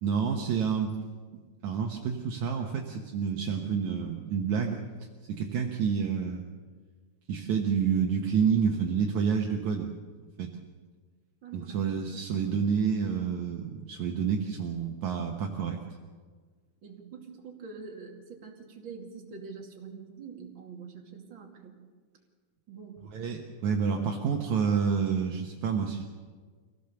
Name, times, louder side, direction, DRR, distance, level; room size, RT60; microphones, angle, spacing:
voice 1, 0.0-0.9 1.6-4.8 5.3-6.4 7.3-9.9 10.4-10.5 11.5-15.8 23.1-26.0, right 6 dB, 65° right, 1 dB, 1.9 m, -28 dB
voice 2, 11.4-11.8 12.1-12.2 16.8-21.8 22.7-23.0, right 5 dB, 35° right, 0 dB, 2.7 m, -45 dB
24.5 x 17.0 x 6.9 m, 1.5 s
omnidirectional pair, 4.8 m